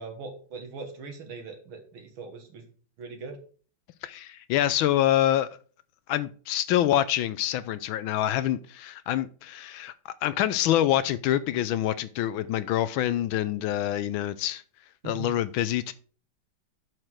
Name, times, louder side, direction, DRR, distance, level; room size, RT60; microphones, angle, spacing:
voice 1, 0.0-2.7 3.0-3.4 15.0-15.3, right 4 dB, 75° right, 3 dB, 2.2 m, -40 dB
voice 2, 4.0-5.5 6.1-14.6 15.0-15.9, left 12 dB, 80° left, 14 dB, 1.3 m, -26 dB
7.8 x 5.9 x 4.6 m, 0.41 s
omnidirectional pair, 2.2 m